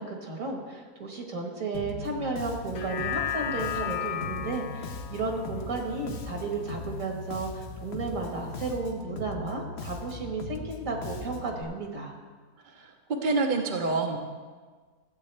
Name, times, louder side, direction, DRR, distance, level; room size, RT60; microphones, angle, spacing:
voice 1, 0.0-12.1, right 3 dB, 65° right, 1 dB, 1.9 m, -33 dB
Bass guitar, 1.7-11.6, left 3 dB, 50° left, 1.0 m, -39 dB
sound 1, 2.6-7.2 7.6-7.7, left 11 dB, 75° left, 1.2 m, -35 dB
voice 2, 13.2-14.2, right 3 dB, 40° right, 2 dB, 0.8 m, -27 dB
15.5 x 8.2 x 3.3 m, 1.5 s
omnidirectional pair, 1.5 m